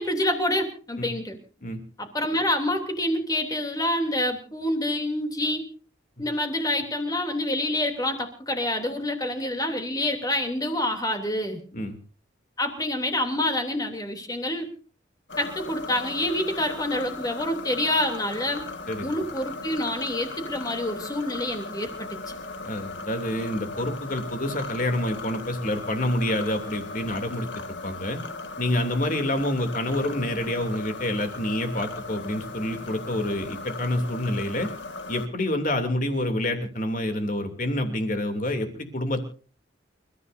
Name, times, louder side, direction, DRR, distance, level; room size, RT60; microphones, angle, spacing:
voice 1, 0.0-1.4 2.0-5.6 6.2-11.6 12.6-14.7 15.4-18.6 19.0-22.3, left 1 dB, 20° left, 5 dB, 3.1 m, -27 dB
sound 1, 15.3-35.3, left 3 dB, 75° left, 1.8 m, -37 dB
voice 2, 22.6-27.5 27.8-28.2 28.6-34.7 35.1-39.2, left 1 dB, 45° left, 6 dB, 2.9 m, -27 dB
29.0 x 14.5 x 2.7 m, 0.38 s
head